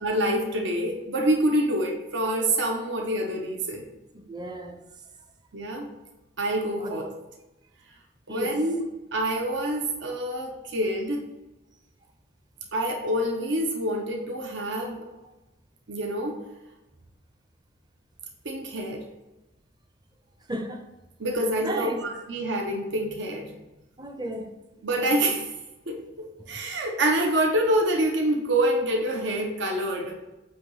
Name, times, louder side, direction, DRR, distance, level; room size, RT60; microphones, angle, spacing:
voice 1, 0.0-3.9 5.5-5.9 6.4-7.1 8.3-11.2 12.7-15.1 15.9-16.4 18.4-19.1 21.2-23.5 24.8-25.5 25.9-30.2, right 1 dB, 80° right, 0.9 m, -26 dB
voice 2, 4.1-4.8 6.8-7.0 8.3-8.6 20.5-20.9 21.6-22.0 24.0-24.5, right 1 dB, 20° right, 0.6 m, -33 dB
7.9 x 3.0 x 3.9 m
head